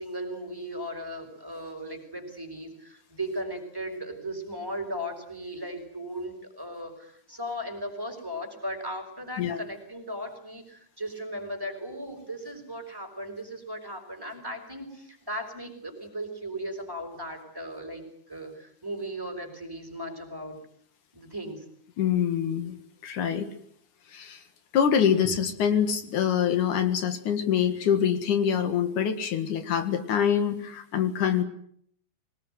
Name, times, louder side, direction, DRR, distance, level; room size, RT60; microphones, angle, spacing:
voice 1, 0.0-20.6 21.1-21.6, equal, 5° right, 3 dB, 5.3 m, -37 dB
voice 2, 22.0-22.8 23.0-23.5 24.1-24.4 24.7-31.4, left 8 dB, 80° left, 9 dB, 3.3 m, -25 dB
23.5 x 19.5 x 9.3 m, 0.65 s
omnidirectional pair, 3.5 m